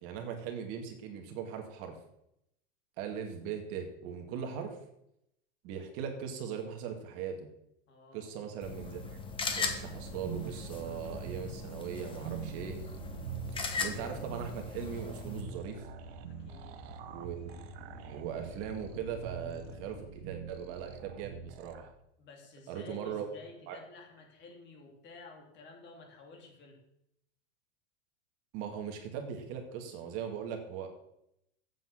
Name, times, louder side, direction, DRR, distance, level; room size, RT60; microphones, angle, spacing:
voice 1, 0.0-2.0 3.0-4.8 5.6-7.5 8.1-9.2 9.5-12.8 13.8-15.8 17.1-21.9 22.7-23.3 23.7-23.8 28.5-30.9, right 7 dB, 45° right, 4 dB, 1.9 m, -39 dB
voice 2, 7.9-8.3 16.3-16.7 22.2-26.8, left 3 dB, 35° left, 2 dB, 2.9 m, -52 dB
sound 1, 8.6-15.4, left 4 dB, 15° left, 1.2 m, -39 dB
sound 2, 9.4-21.9, right 8 dB, 70° right, 1.1 m, -45 dB
sound 3, 12.3-20.0, left 5 dB, 85° left, 4.6 m, -51 dB
8.0 x 7.6 x 7.3 m, 0.80 s
supercardioid pair, 150°, 32 cm